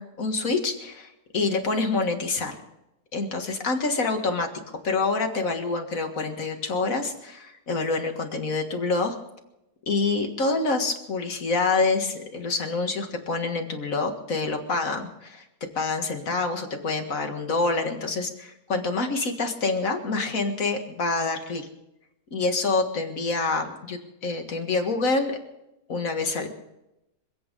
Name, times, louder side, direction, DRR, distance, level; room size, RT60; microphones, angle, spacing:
voice 1, 0.0-2.6 3.1-4.5 4.8-9.2 9.9-15.5 15.8-21.7 22.3-25.4 25.9-26.5, left 3 dB, 70° left, 4 dB, 2.2 m, -27 dB
26.0 x 8.6 x 5.3 m, 0.90 s
omnidirectional pair, 1.5 m